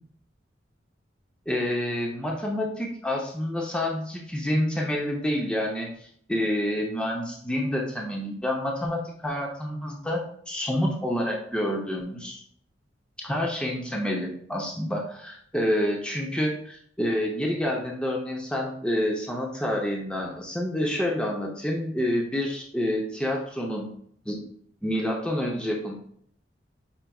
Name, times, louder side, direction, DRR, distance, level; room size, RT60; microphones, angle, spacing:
voice 1, 1.5-12.4 13.2-23.9 24.3-24.4 24.8-25.9, left 1 dB, 5° left, -1 dB, 0.7 m, -28 dB
5.8 x 3.9 x 2.3 m, 0.63 s
head